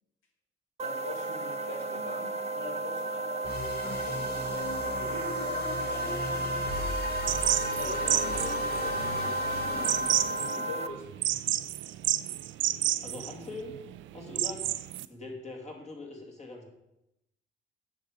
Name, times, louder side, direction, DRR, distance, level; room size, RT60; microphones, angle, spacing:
voice 1, 0.8-3.4 3.8-6.6 7.4-7.5 7.8-11.0, left 3 dB, 80° left, 2 dB, 2.1 m, -43 dB
sound 1, 0.8-10.9, right 2 dB, 30° right, 0.7 m, -33 dB
sound 2, 3.4-10.5, left 2 dB, 50° left, 2.4 m, -37 dB
sound 3, 7.3-15.1, right 14 dB, 75° right, 0.5 m, -31 dB
voice 2, 13.0-13.8 14.1-14.7 15.1-16.7, left 2 dB, 35° left, 0 dB, 2.7 m, -42 dB
9.0 x 6.6 x 5.2 m, 0.87 s
cardioid pair, 90°, 20 cm